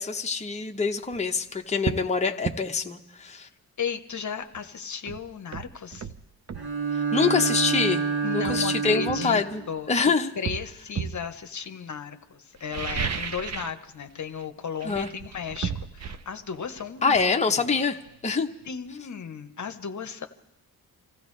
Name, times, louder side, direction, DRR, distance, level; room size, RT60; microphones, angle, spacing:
voice 1, 0.0-3.5 6.9-8.0 8.3-10.3 14.8-15.1 17.0-18.0 18.2-18.5, left 5 dB, 20° left, 3 dB, 0.9 m, -25 dB
sound 1, 1.0-1.2 1.8-2.1 2.4-2.6 4.5-4.6 5.1-6.7 7.8-7.9 8.5-9.9 10.4-11.3 12.5-13.8 14.1-14.4 14.8-18.3 18.6-18.7, right 7 dB, 45° right, 0.7 m, -34 dB
voice 2, 3.8-6.1 8.2-9.4 9.7-17.4 18.7-20.3, left 6 dB, 50° left, 7 dB, 1.0 m, -35 dB
Bowed string instrument, 6.5-9.7, right 5 dB, 70° right, 2.6 m, -27 dB
27.0 x 15.0 x 3.3 m, 0.93 s
cardioid pair, 80°, 38 cm